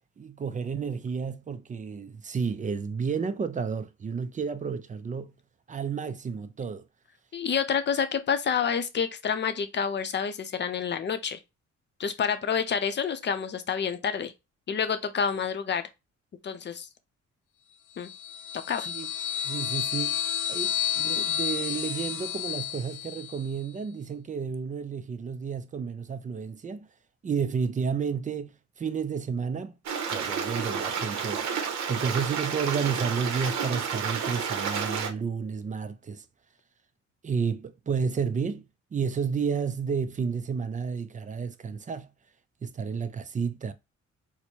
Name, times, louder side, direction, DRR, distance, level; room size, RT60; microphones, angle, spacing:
voice 1, 0.2-5.4 5.7-6.9 18.8-19.1 19.4-20.2 20.5-26.9 27.2-29.7 30.1-31.5 31.9-36.2 37.2-42.1 42.6-43.7, right 6 dB, 25° right, 0.4 m, -31 dB
voice 2, 7.3-11.4 12.0-14.3 14.7-15.8 16.4-16.9 18.0-18.1 18.7-18.9, left 7 dB, 35° left, 0.6 m, -28 dB
sound 1, 18.0-23.5, left 9 dB, 85° left, 0.6 m, -31 dB
Stream, 29.9-35.1, right 6 dB, 65° right, 0.8 m, -30 dB
4.4 x 2.1 x 2.7 m
cardioid pair, 90°, 30 cm